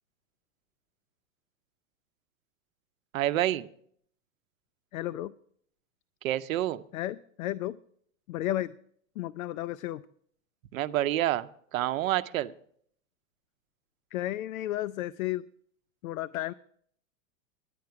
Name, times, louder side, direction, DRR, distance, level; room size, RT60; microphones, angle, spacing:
voice 1, 3.1-3.7 6.2-6.8 10.7-12.5, right 13 dB, 80° right, 0.7 m, -28 dB
voice 2, 4.9-5.3 6.9-7.8 8.3-8.7 9.2-10.0 14.1-15.4 16.0-16.5, left 14 dB, 85° left, 0.5 m, -33 dB
10.0 x 9.4 x 5.8 m
hypercardioid pair, 135°, 40 cm